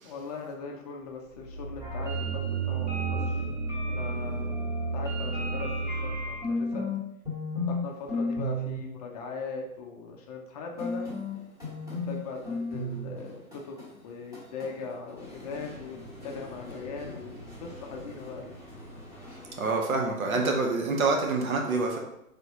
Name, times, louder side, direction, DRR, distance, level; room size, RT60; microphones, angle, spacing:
voice 1, 0.0-3.5 3.8-6.8 7.7-11.2 11.9-13.8 14.0-16.0 16.2-18.4, left 4 dB, 30° left, 1 dB, 0.5 m, -40 dB
sound 1, 1.3-6.4, right 4 dB, 35° right, 0.5 m, -32 dB
sound 2, 1.8-7.0 7.2-7.8 8.1-8.8 10.8-19.7, left 2 dB, 10° right, 1.4 m, -36 dB
voice 2, 19.6-22.0, right 3 dB, 75° right, 2 dB, 1.0 m, -26 dB
3.8 x 3.4 x 2.9 m, 0.81 s
hypercardioid pair, 125°, 42 cm